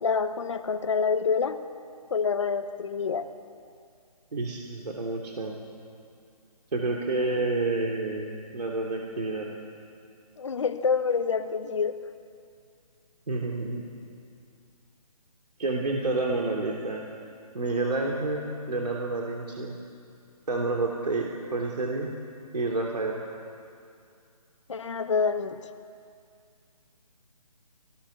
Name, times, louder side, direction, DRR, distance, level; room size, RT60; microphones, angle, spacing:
voice 1, 0.0-1.6 2.1-3.3 10.4-12.0 24.7-25.6, left 5 dB, 50° left, 9 dB, 1.3 m, -27 dB
voice 2, 4.3-5.5 6.7-9.5 13.3-13.8 15.6-17.0 17.5-19.8 20.5-22.1 22.5-23.2, right 2 dB, 80° right, -1 dB, 3.4 m, -29 dB
22.5 x 19.0 x 7.1 m, 2.3 s
hypercardioid pair, 165°, 20 cm